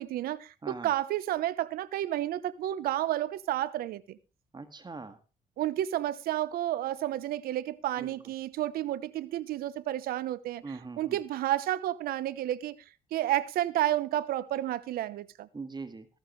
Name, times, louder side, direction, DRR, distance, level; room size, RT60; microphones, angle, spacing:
voice 1, 0.0-4.2 5.6-10.6 11.0-12.8 13.1-15.5, right 13 dB, 85° right, 1.0 m, -31 dB
voice 2, 0.6-0.9 4.5-5.2 8.0-8.2 10.6-11.2 15.5-16.1, right 4 dB, 30° right, 1.9 m, -41 dB
15.0 x 14.0 x 3.2 m
cardioid pair, 75°, 15 cm